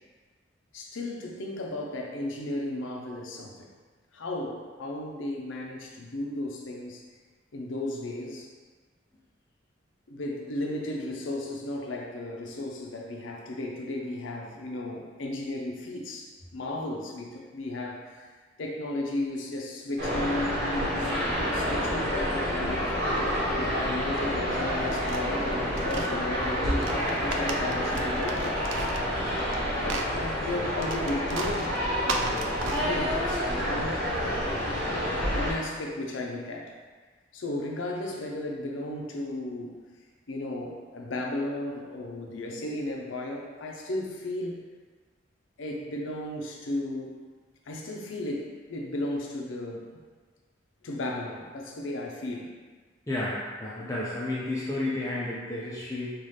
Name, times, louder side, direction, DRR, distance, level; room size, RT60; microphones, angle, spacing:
voice 1, 0.7-3.7 4.1-7.0 7.5-8.5 10.1-18.3 18.6-20.5 21.0-23.2 23.5-28.6 29.8-31.7 32.0-34.1 35.3-36.8 37.3-39.8 40.3-44.6 45.6-47.1 47.7-49.8 50.8-52.6, left 1 dB, 85° left, 0 dB, 0.6 m, -35 dB
sound 1, 20.0-35.5, equal, 45° right, 1.4 m, -28 dB
sound 2, 24.6-26.1 26.7-29.6 29.8-33.3, right 3 dB, 85° right, 0.4 m, -36 dB
voice 2, 53.1-56.1, left 2 dB, 15° left, -7 dB, 0.5 m, -31 dB
5.4 x 2.4 x 3.2 m, 1.4 s
head